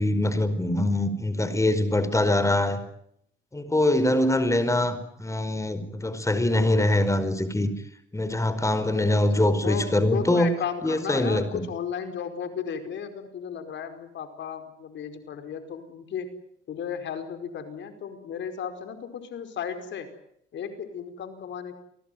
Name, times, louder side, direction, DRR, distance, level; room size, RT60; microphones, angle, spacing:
voice 1, 0.0-2.8 3.5-7.7 8.1-10.5 10.8-11.4, left 1 dB, 15° left, 12 dB, 4.9 m, -23 dB
voice 2, 9.1-16.3 16.7-20.1 20.5-21.7, left 7 dB, 70° left, 8 dB, 5.0 m, -34 dB
29.0 x 18.0 x 9.4 m, 0.72 s
cardioid pair, 90°, 20 cm